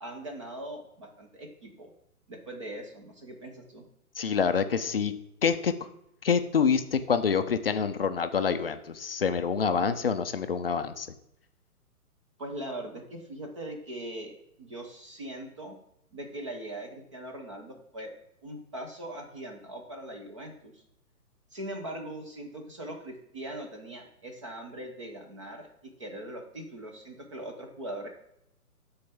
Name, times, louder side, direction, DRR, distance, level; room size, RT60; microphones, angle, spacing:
voice 1, 0.0-1.9 2.3-3.9 12.4-14.3 14.6-15.7 16.1-18.1 18.4-20.8 21.5-28.1, right 1 dB, 20° right, 3 dB, 0.6 m, -41 dB
voice 2, 4.2-5.9 6.2-11.1, left 6 dB, 40° left, 10 dB, 0.4 m, -27 dB
12.5 x 4.3 x 3.5 m, 0.78 s
hypercardioid pair, 160°, 45 cm